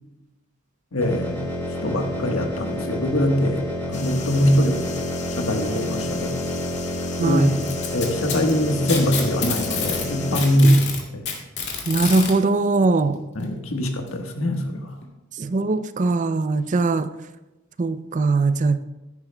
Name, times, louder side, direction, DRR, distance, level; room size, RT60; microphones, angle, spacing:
voice 1, 0.9-1.4 1.8-4.9 5.3-6.4 7.2-7.4 7.9-11.3 13.3-14.9, equal, 75° left, 4 dB, 1.3 m, -22 dB
sound 1, 1.0-10.4, left 1 dB, 10° left, 3.7 m, -29 dB
sound 2, 3.9-10.6, left 6 dB, 35° left, 0.8 m, -38 dB
voice 2, 7.2-7.7 10.6-10.8 11.9-13.2 15.4-17.1 17.8-18.8, right 3 dB, 35° right, 12 dB, 0.4 m, -21 dB
Packing tape duct tape, 7.6-10.1 10.3-12.3 13.4-13.5 14.1-14.2 15.0-15.1, left 6 dB, 55° left, 2.3 m, -28 dB
14.5 x 11.0 x 2.2 m, 1.1 s
head